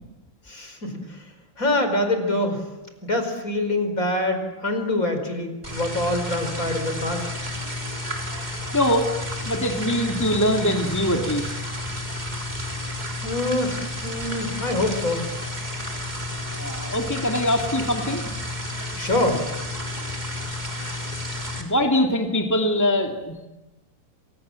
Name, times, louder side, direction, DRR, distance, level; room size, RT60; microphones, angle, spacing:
voice 1, 0.5-1.2 1.6-2.6 3.0-7.3 13.2-15.5 19.0-19.4, left 1 dB, 45° left, 7 dB, 5.2 m, -25 dB
sound 1, 5.6-21.6, left 1 dB, 20° right, 4.0 m, -31 dB
voice 2, 8.7-9.1 9.5-11.5 16.5-18.2 21.6-23.5, left 1 dB, 10° left, 2 dB, 2.2 m, -23 dB
28.0 x 27.0 x 7.6 m, 1.1 s
omnidirectional pair, 2.0 m